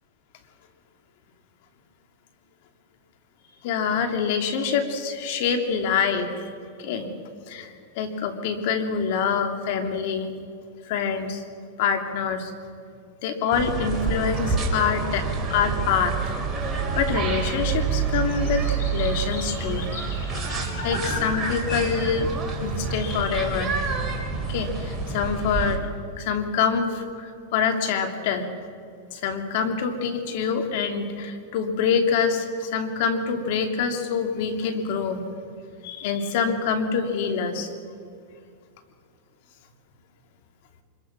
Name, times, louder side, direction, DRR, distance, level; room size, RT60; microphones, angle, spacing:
voice 1, 3.6-6.5 6.8-7.1 7.5-10.3 10.9-11.4 11.8-12.5 13.2-16.2 16.7-19.9 20.5-22.3 22.6-23.7 24.5-25.9 26.2-28.5 29.1-35.2 35.8-37.7, left 6 dB, 60° left, 6 dB, 2.7 m, -26 dB
sound 1, 13.5-25.8, right 4 dB, 15° right, 3.5 m, -28 dB
sound 2, 17.2-17.3 17.6-23.2, left 3 dB, 80° left, 6.6 m, -38 dB
25.5 x 22.5 x 6.0 m, 2.3 s
hypercardioid pair, 130°, 0 cm